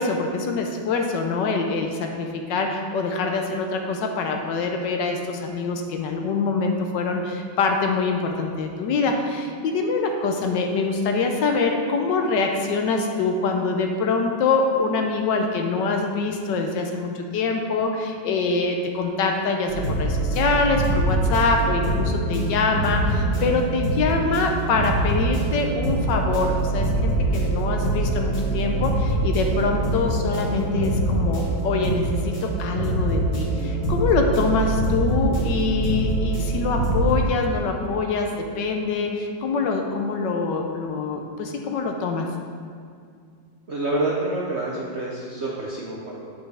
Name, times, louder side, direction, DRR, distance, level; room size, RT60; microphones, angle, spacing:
voice 1, 0.0-42.3, left 4 dB, 75° left, 3 dB, 1.3 m, -24 dB
sound 1, 19.7-37.1, right 2 dB, 50° left, 2.2 m, -24 dB
voice 2, 43.7-46.3, right 2 dB, 55° right, -4 dB, 0.8 m, -27 dB
8.4 x 5.5 x 3.4 m, 2.2 s
omnidirectional pair, 2.0 m